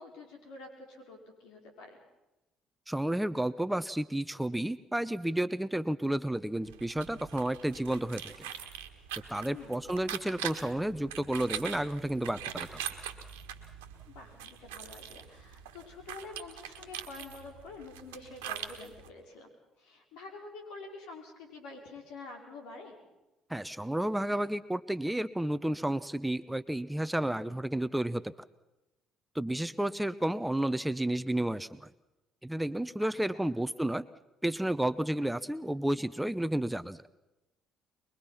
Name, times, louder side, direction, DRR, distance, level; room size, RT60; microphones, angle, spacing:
voice 1, 0.0-2.0 9.5-9.8 14.1-19.5 19.8-23.0 33.0-33.1, left 3 dB, 75° left, 2 dB, 5.2 m, -47 dB
voice 2, 2.9-8.5 9.3-12.8 23.5-28.3 29.3-31.9 32.4-34.1 34.4-37.0, right 1 dB, 5° right, 13 dB, 0.9 m, -31 dB
sound 1, 6.6-19.1, right 10 dB, 85° right, 1.6 m, -42 dB
23.5 x 22.0 x 5.9 m, 0.98 s
hypercardioid pair, 55°, 0 cm